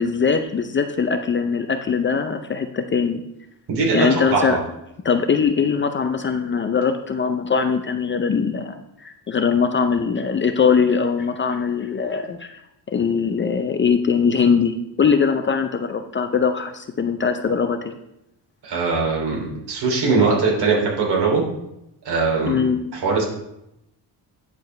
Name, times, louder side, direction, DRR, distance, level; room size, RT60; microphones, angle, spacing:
voice 1, 0.0-3.2 3.9-4.6 5.0-12.5 12.9-17.9 22.5-22.8, left 6 dB, 30° left, 7 dB, 0.5 m, -21 dB
voice 2, 3.7-4.6 18.6-21.4 22.0-22.6 22.9-23.2, right 4 dB, 70° right, -2 dB, 2.9 m, -21 dB
9.5 x 6.9 x 3.2 m, 0.84 s
cardioid pair, 140°, 41 cm